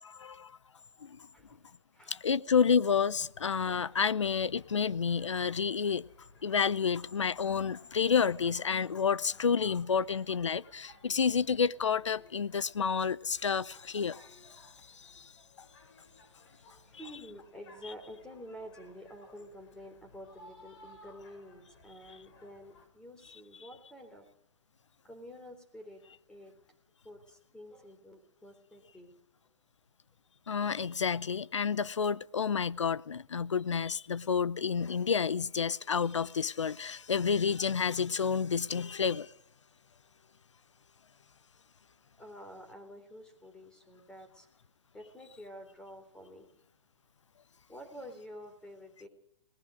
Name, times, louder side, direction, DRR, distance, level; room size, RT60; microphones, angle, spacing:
voice 1, 0.0-0.6 1.0-1.2 2.1-6.1 6.4-14.4 15.0-15.3 30.5-39.3, left 6 dB, 90° left, 0.7 m, -30 dB
voice 2, 1.3-1.7 1.9-2.1 16.6-24.3 25.0-26.0 26.3-26.5 27.0-29.1 42.2-44.5 44.9-46.5 47.7-49.1, equal, 5° left, 3.7 m, -49 dB
sound 1, 3.3-22.9, left 2 dB, 55° left, 6.8 m, -59 dB
26.5 x 19.5 x 5.1 m
hypercardioid pair, 135°, 15 cm